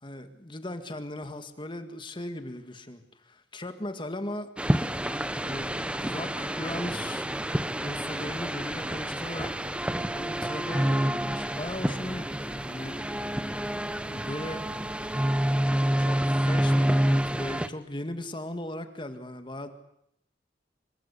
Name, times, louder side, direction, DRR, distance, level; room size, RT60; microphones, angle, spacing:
voice 1, 0.0-4.5 5.4-7.3 7.8-9.6 10.1-13.0 14.1-14.7 16.0-19.7, left 1 dB, 25° left, 8 dB, 1.9 m, -38 dB
sound 1, 4.6-17.7, equal, 5° right, 1.0 m, -28 dB
27.0 x 24.5 x 8.3 m, 0.76 s
head